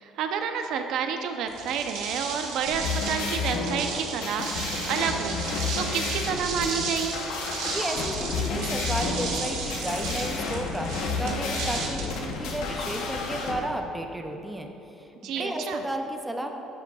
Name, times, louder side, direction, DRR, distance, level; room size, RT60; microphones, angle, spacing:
voice 1, 0.0-5.4 5.7-7.1 15.2-15.8, right 7 dB, 60° right, 6 dB, 0.6 m, -30 dB
sound 1, 1.5-12.9, right 4 dB, 85° right, 1.2 m, -34 dB
sound 2, 2.6-13.6, left 4 dB, 90° left, 1.0 m, -31 dB
voice 2, 7.7-16.5, right 1 dB, 5° right, 3 dB, 0.5 m, -33 dB
sound 3, 7.9-13.4, left 5 dB, 55° left, 0.5 m, -38 dB
9.9 x 8.4 x 2.3 m, 2.9 s
cardioid pair, 170°, 0 cm